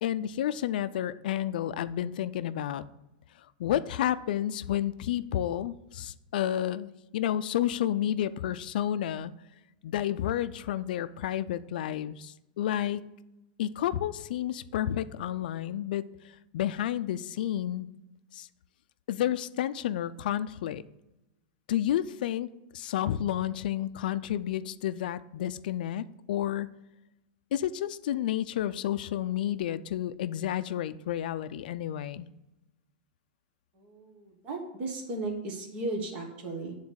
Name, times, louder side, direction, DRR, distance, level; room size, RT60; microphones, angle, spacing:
voice 1, 0.0-2.8 3.6-9.3 9.8-13.1 13.6-16.1 16.5-17.9 18.3-18.5 19.1-20.8 21.7-26.7 27.5-32.3, left 11 dB, 65° left, 13 dB, 0.4 m, -31 dB
voice 2, 33.7-36.7, right 2 dB, 25° right, 1 dB, 1.4 m, -36 dB
9.5 x 4.0 x 6.4 m, 0.95 s
supercardioid pair, 175°, 5 cm